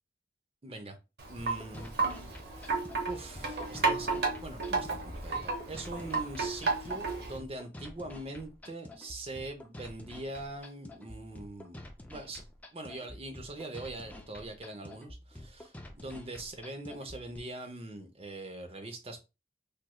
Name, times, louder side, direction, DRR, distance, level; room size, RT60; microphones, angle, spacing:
voice 1, 0.6-1.0 1.3-2.3 3.1-11.8 12.1-12.4 12.7-19.2, right 2 dB, 35° right, 0.7 m, -42 dB
Wind chime, 1.2-7.4, right 4 dB, 65° right, 1.0 m, -33 dB
sound 1, 1.4-17.4, left 1 dB, 10° left, 0.4 m, -49 dB
3.4 x 3.1 x 2.2 m
head